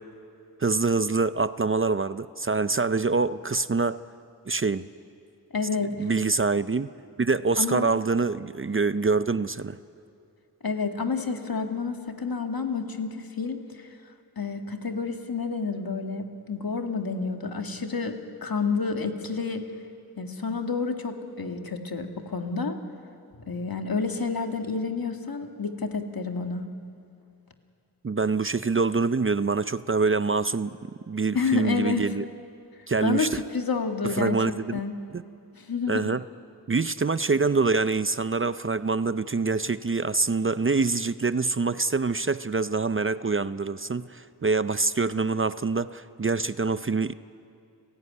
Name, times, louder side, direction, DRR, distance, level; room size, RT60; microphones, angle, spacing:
voice 1, 0.6-4.0 4.5-4.9 5.9-6.9 7.2-9.8 28.0-30.8 31.1-32.3 32.9-33.4 34.0-34.8 35.9-36.2 36.7-47.1, right 4 dB, 30° right, 13 dB, 0.6 m, -25 dB
voice 2, 5.5-6.1 7.6-7.9 10.6-13.9 14.4-19.7 20.2-22.8 23.5-26.6 31.3-32.1 33.0-35.0 35.6-36.1, left 4 dB, 60° left, 5 dB, 2.0 m, -29 dB
29.0 x 15.0 x 9.7 m, 2.5 s
wide cardioid pair, 55°, 40 cm